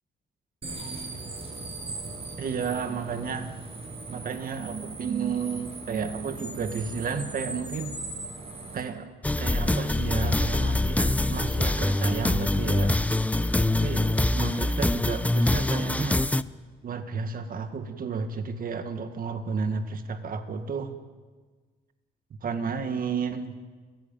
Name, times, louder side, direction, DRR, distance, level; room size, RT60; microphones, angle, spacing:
sound 1, 0.6-8.8, right 2 dB, 35° right, 7.2 m, -39 dB
voice 1, 2.4-3.5 4.1-8.0 8.7-9.1 9.4-13.0 13.7-16.3 16.8-21.0 22.4-23.6, right 5 dB, 55° right, 8 dB, 1.9 m, -32 dB
sound 2, 9.2-16.4, left 2 dB, 10° left, 0.7 m, -24 dB
29.5 x 17.0 x 9.0 m, 1.4 s
cardioid pair, 105°, 17 cm